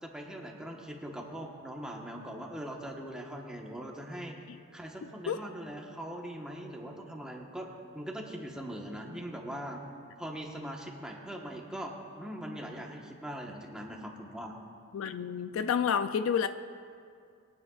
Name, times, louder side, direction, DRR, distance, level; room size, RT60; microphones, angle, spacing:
voice 1, 0.0-4.4 4.7-7.7 7.9-9.8 10.2-14.6, equal, 5° right, -1 dB, 1.1 m, -41 dB
voice 2, 14.9-16.5, left 7 dB, 65° left, 11 dB, 0.4 m, -29 dB
22.5 x 9.8 x 2.4 m, 2.3 s
head